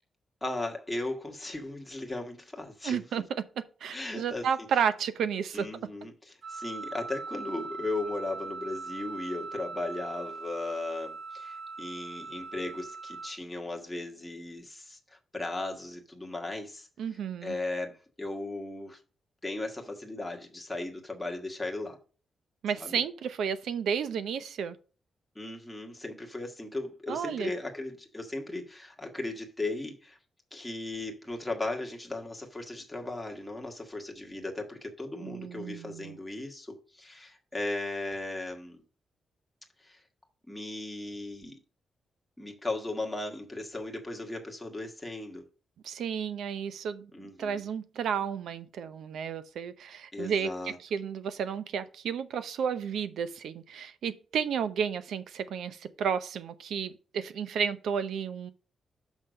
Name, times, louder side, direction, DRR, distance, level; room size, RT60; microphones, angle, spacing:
voice 1, 0.4-3.0 3.9-4.5 5.5-16.9 17.4-19.0 19.4-22.0 22.7-23.0 25.3-30.2 30.5-38.8 39.8-40.0 40.5-41.6 42.4-45.4 47.1-47.6 50.1-50.8, left 2 dB, 10° left, 1.4 m, -37 dB
voice 2, 2.8-5.7 17.0-17.6 22.6-24.8 27.1-27.5 35.2-36.2 45.8-50.5 50.9-58.5, right 7 dB, 80° right, 0.7 m, -32 dB
Wind instrument woodwind instrument, 6.4-13.3, right 4 dB, 40° right, 1.5 m, -41 dB
6.4 x 5.7 x 5.1 m
wide cardioid pair, 175°, 0 cm